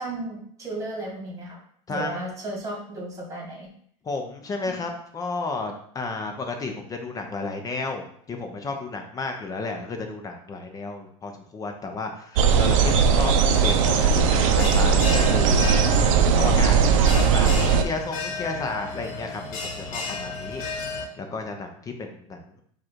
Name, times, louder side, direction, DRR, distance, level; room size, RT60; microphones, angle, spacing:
voice 1, 0.0-1.6 1.9-3.7 4.7-4.9, right 1 dB, 20° right, -1 dB, 1.7 m, -34 dB
voice 2, 4.0-15.8 16.1-16.8 17.1-19.4 19.8-20.6 20.9-22.4, left 3 dB, 20° left, 4 dB, 0.7 m, -32 dB
sound 1, 12.4-17.8, right 6 dB, 65° right, 0.6 m, -19 dB
Bell, 13.5-21.0, left 4 dB, 65° left, 1.1 m, -34 dB
4.7 x 2.5 x 4.5 m, 0.65 s
supercardioid pair, 120°, 18 cm